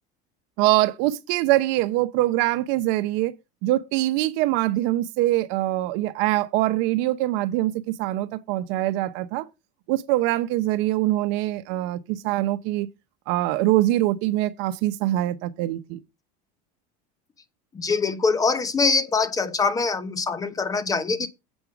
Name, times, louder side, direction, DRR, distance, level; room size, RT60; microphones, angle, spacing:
voice 1, 0.6-3.3 3.6-9.4 9.9-12.9 13.3-16.0 21.2-21.3, right 16 dB, 60° right, 0.8 m, -23 dB
voice 2, 17.7-21.3, left 4 dB, 15° left, 0.9 m, -23 dB
8.0 x 5.5 x 6.0 m
cardioid pair, 150°, 20 cm